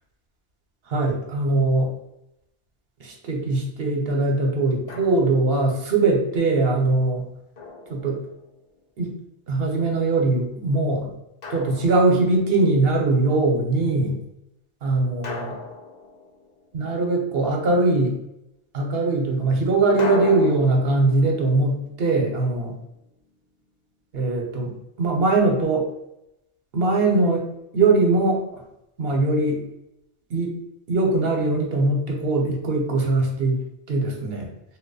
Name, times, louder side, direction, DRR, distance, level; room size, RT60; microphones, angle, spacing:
voice 1, 0.9-1.9 3.0-7.2 7.9-8.2 9.0-9.1 9.5-11.1 11.5-14.2 14.8-15.5 16.7-18.2 18.7-22.7 24.1-24.7 25.0-25.9 26.7-27.5 27.7-28.6 29.0-29.6 30.3-30.5 30.9-33.6 33.9-34.5, right 2 dB, 60° right, 1 dB, 0.9 m, -21 dB
Drum, 4.9-5.6 7.6-8.6 11.4-12.6 15.2-16.9 20.0-23.0, left 3 dB, 50° left, 0.6 m, -37 dB
3.0 x 2.3 x 3.9 m, 0.84 s
omnidirectional pair, 1.1 m